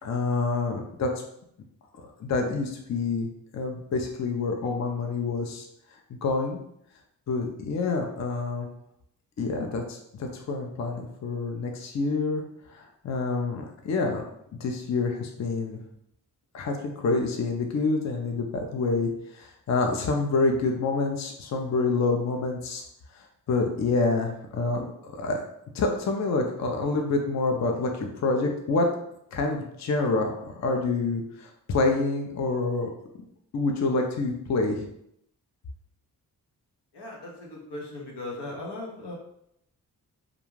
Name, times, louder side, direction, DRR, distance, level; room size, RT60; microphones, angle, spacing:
voice 1, 0.0-1.1 2.2-3.3 3.5-5.7 6.1-6.6 7.3-8.7 9.4-12.4 12.7-14.2 14.6-15.8 16.5-22.8 23.1-25.4 25.7-28.9 29.3-32.9 33.5-34.9, left 3 dB, 45° left, 3 dB, 0.5 m, -27 dB
voice 2, 36.9-39.1, left 2 dB, 85° left, -2 dB, 0.9 m, -38 dB
2.4 x 2.2 x 3.1 m, 0.75 s
cardioid pair, 60°, 39 cm